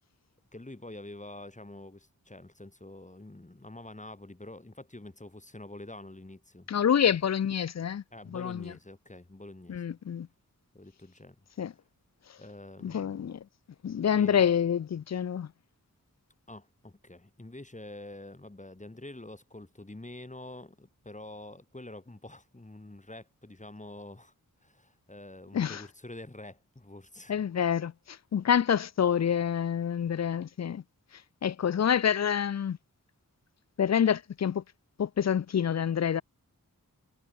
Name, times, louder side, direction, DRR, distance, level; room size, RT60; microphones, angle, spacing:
voice 1, 0.5-6.7 8.1-9.8 10.7-11.4 12.4-13.4 14.1-14.5 16.5-24.3 24.6-27.3, left 2 dB, 20° left, 2.2 m, -46 dB
voice 2, 6.7-8.0 8.3-8.7 9.7-10.3 11.6-11.7 12.8-13.4 13.8-15.5 25.5-25.8 27.3-30.8 31.1-32.8 33.8-34.6 35.0-36.2, left 8 dB, 50° left, 0.4 m, -27 dB
wide cardioid pair, 80°, 35 cm